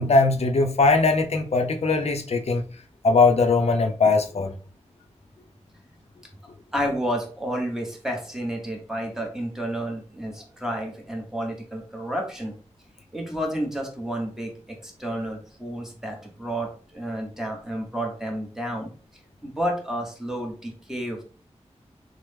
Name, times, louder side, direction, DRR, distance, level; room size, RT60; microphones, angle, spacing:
voice 1, 0.0-2.6 3.0-4.5, left 3 dB, 60° left, 4 dB, 0.5 m, -20 dB
voice 2, 6.7-12.5 13.1-18.9 19.4-21.2, equal, 5° right, 1 dB, 0.9 m, -31 dB
3.0 x 2.0 x 3.3 m, 0.40 s
wide cardioid pair, 70°, 12 cm